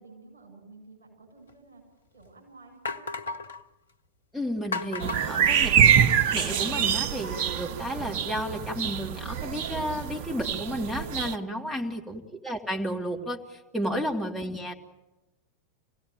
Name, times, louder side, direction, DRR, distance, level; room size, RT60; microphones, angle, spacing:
voice 1, 0.0-1.8 2.1-3.0 11.4-11.9 14.2-14.5, right 3 dB, 65° right, 1 dB, 7.7 m, -52 dB
sound 1, 1.5-1.6 2.2-2.3 2.8-3.6 4.7-6.2, left 3 dB, 70° left, 0.9 m, -35 dB
voice 2, 4.3-5.9 6.3-14.7, equal, ahead, 1 dB, 2.6 m, -32 dB
sound 2, 5.0-11.3, right 8 dB, 50° right, 0.8 m, -25 dB
26.5 x 17.0 x 9.1 m, 1.1 s
figure-of-eight pair, 90°, 0 cm